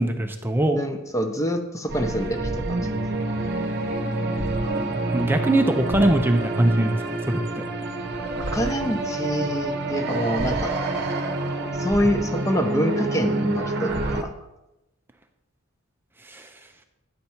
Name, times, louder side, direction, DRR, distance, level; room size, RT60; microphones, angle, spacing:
voice 1, 0.0-0.8 5.1-7.6 16.3-16.5, right 1 dB, 10° right, 5 dB, 0.6 m, -22 dB
voice 2, 0.7-2.8 8.4-10.7 11.8-14.3, equal, 15° left, 6 dB, 0.9 m, -26 dB
sound 1, 1.9-14.2, right 2 dB, 55° right, 0.9 m, -27 dB
9.6 x 6.8 x 4.4 m, 0.95 s
head